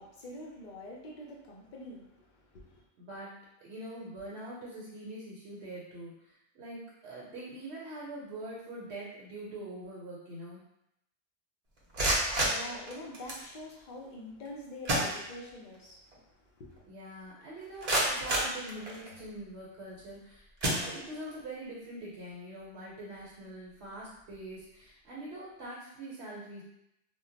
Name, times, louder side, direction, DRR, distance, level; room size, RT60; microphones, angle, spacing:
voice 1, 0.0-2.8 12.0-16.9, left 1 dB, 60° left, -2 dB, 0.5 m, -46 dB
voice 2, 3.0-10.6 16.9-20.5 20.7-26.6, right 1 dB, 65° right, -5 dB, 0.9 m, -44 dB
sound 1, 11.8-13.5 14.5-14.6 14.9-15.8 16.1-16.2 16.8-16.9 17.4-19.3 19.9-20.1 20.6-21.4, right 1 dB, 45° right, 0.5 m, -31 dB
2.2 x 2.0 x 3.7 m, 0.83 s
omnidirectional pair, 1.2 m